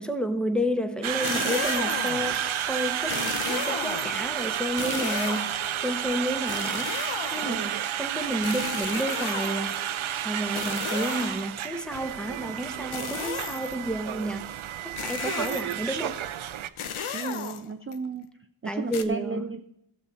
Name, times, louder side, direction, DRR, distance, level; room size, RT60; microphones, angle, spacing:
voice 1, 0.0-5.5 5.8-6.9 7.3-9.8 10.2-14.5 14.8-16.2 18.6-19.5, equal, ahead, 6 dB, 1.0 m, -31 dB
Conversation, 1.0-16.7, right 10 dB, 75° right, 0.7 m, -31 dB
sound 1, 1.1-2.4 3.1-4.2 4.7-5.7 6.5-7.7 8.4-9.9 10.5-11.6 12.9-13.8 15.0-15.9 16.8-17.9 18.9-19.0, left 7 dB, 80° left, 0.9 m, -34 dB
voice 2, 3.1-3.4 7.4-7.8 17.1-18.3 18.6-19.6, right 5 dB, 25° right, 8 dB, 0.5 m, -34 dB
15.5 x 7.2 x 4.1 m, 0.82 s
wide cardioid pair, 85°, 49 cm